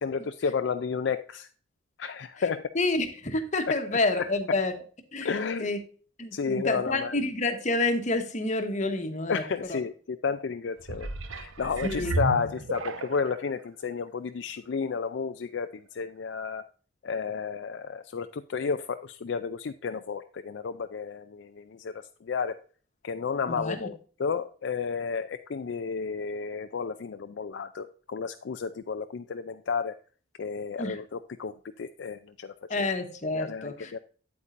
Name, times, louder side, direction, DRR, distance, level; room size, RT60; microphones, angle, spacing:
voice 1, 0.0-1.5 2.0-2.6 3.7-3.8 4.1-4.3 5.2-5.7 6.3-7.1 9.3-16.6 17.0-22.6 23.0-30.0 30.4-32.9 33.3-34.0, left 5 dB, 60° left, 9 dB, 0.4 m, -32 dB
voice 2, 2.7-4.7 5.1-5.3 5.6-5.8 6.2-9.4 9.7-9.8 11.8-12.1 23.5-23.9 30.8-31.0 32.7-33.9, left 2 dB, 35° left, 6 dB, 1.1 m, -28 dB
sound 1, 10.8-13.4 14.1-14.2, right 2 dB, 80° right, 0.9 m, -33 dB
8.7 x 8.3 x 2.6 m, 0.41 s
head